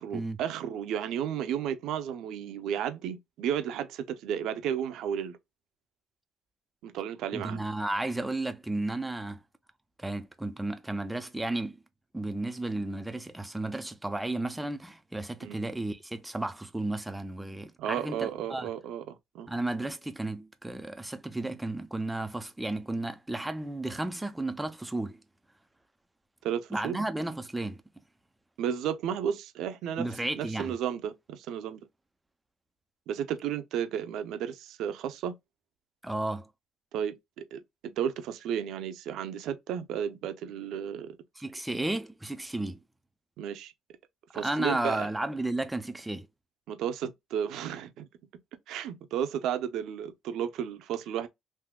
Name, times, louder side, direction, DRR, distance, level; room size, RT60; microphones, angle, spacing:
voice 1, 0.0-5.4 6.8-7.6 15.4-15.6 17.8-19.5 26.4-27.0 28.6-30.1 30.3-31.8 33.1-35.3 36.9-41.2 43.4-43.7 44.3-45.1 46.7-48.1 48.7-51.3, right 9 dB, 75° right, 0.6 m, -33 dB
voice 2, 7.3-9.4 10.0-11.8 12.1-18.7 19.5-25.2 26.7-27.8 30.0-30.8 36.0-36.5 41.4-42.8 44.3-46.3, right 2 dB, 10° right, 0.5 m, -33 dB
3.6 x 2.7 x 2.2 m
cardioid pair, 105°, 0 cm